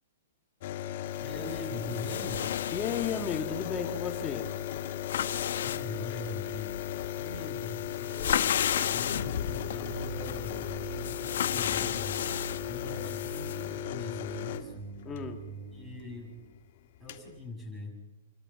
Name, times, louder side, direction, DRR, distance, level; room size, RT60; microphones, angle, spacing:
sound 1, 0.6-15.2 16.5-16.6 16.8-17.3, left 11 dB, 50° left, 1.5 m, -37 dB
sound 2, 1.2-13.7, left 9 dB, 70° left, 0.9 m, -34 dB
voice 1, 1.2-2.5 5.6-6.8 7.2-10.7 11.0-12.2 12.7-14.9 15.7-16.4 17.0-17.9, left 2 dB, 10° right, -1 dB, 6.9 m, -42 dB
voice 2, 2.7-4.5 15.0-15.4, left 6 dB, 15° left, 4 dB, 2.3 m, -33 dB
sound 3, 8.7-16.5, right 8 dB, 35° right, 1.8 m, -45 dB
28.0 x 13.5 x 7.4 m, 1.1 s
hypercardioid pair, 155°, 0 cm